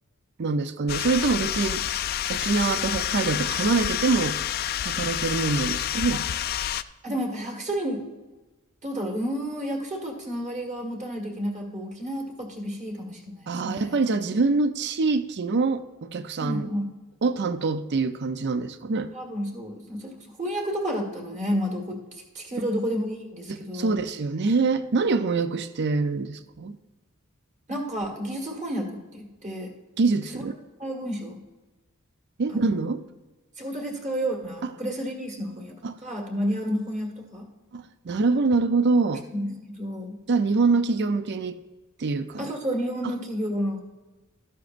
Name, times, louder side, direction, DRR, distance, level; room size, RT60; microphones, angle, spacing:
voice 1, 0.4-1.8 2.3-4.4 4.8-6.2 13.5-16.7 17.2-19.1 23.5-26.8 30.0-30.6 32.4-33.0 35.8-36.0 37.7-39.2 40.3-41.6 42.0-42.5 43.0-43.1, right 4 dB, 55° right, 11 dB, 0.5 m, -25 dB
sound 1, 0.9-6.8, left 11 dB, 45° left, 0.3 m, -28 dB
voice 2, 7.0-8.0 8.8-14.0 16.4-16.9 19.1-22.0 22.3-24.0 27.7-29.7 30.3-30.4 30.8-31.4 32.5-32.8 33.6-37.5 39.3-40.2 42.4-43.8, equal, 35° right, 0 dB, 1.7 m, -31 dB
13.0 x 11.0 x 2.6 m, 1.2 s
head